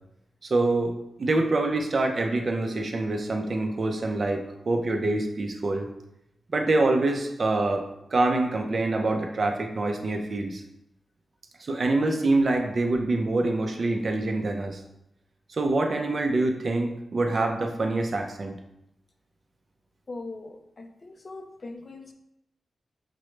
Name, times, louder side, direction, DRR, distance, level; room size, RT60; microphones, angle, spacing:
voice 1, 0.5-5.9 6.5-7.8 8.1-10.6 11.6-14.8 15.5-18.6, right 2 dB, 40° right, 3 dB, 0.5 m, -25 dB
voice 2, 20.1-22.1, left 2 dB, 35° left, 5 dB, 0.4 m, -41 dB
6.0 x 2.0 x 3.1 m, 0.83 s
wide cardioid pair, 155°, 0 cm